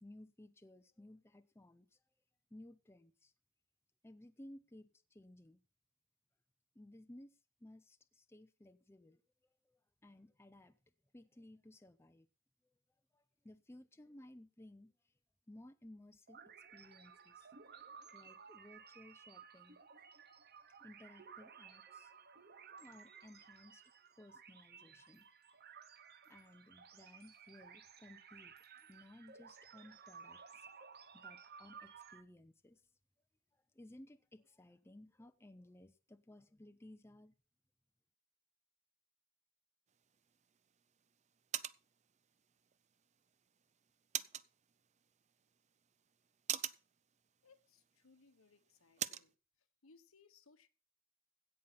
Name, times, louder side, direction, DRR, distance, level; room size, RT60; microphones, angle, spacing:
voice 1, 0.0-2.0 2.5-3.3 4.0-5.6 6.8-9.2 9.7-10.8 11.1-12.3 13.1-14.9 15.5-17.5 18.1-19.8 20.8-22.1 22.8-23.8 24.2-25.3 26.3-28.5 28.8-32.8 33.7-37.3, left 1 dB, 10° left, 0.6 m, -58 dB
sound 1, 16.3-32.2, right 6 dB, 50° right, 1.0 m, -57 dB
sound 2, 39.9-49.3, right 10 dB, 35° right, 0.5 m, -47 dB
voice 2, 47.4-49.3 49.8-50.7, left 4 dB, 80° left, 1.2 m, -66 dB
16.5 x 5.7 x 5.7 m
head